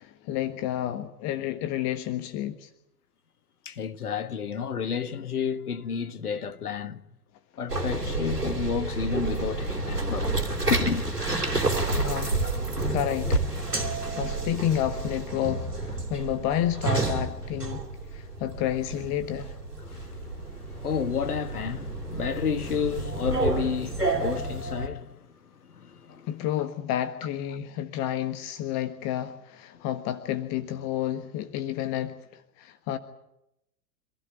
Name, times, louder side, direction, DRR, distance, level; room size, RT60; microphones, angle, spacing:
voice 1, 0.0-2.7 11.9-12.4 12.9-13.5 14.2-19.6 26.3-33.0, left 11 dB, 35° left, 1.5 m, -30 dB
voice 2, 3.7-7.0 7.6-10.3 10.7-11.0 19.8-26.3, left 7 dB, 70° left, 2.0 m, -31 dB
sound 1, 7.7-24.9, right 2 dB, 85° right, 3.3 m, -30 dB
27.0 x 16.0 x 9.4 m
figure-of-eight pair, 90°, 46 cm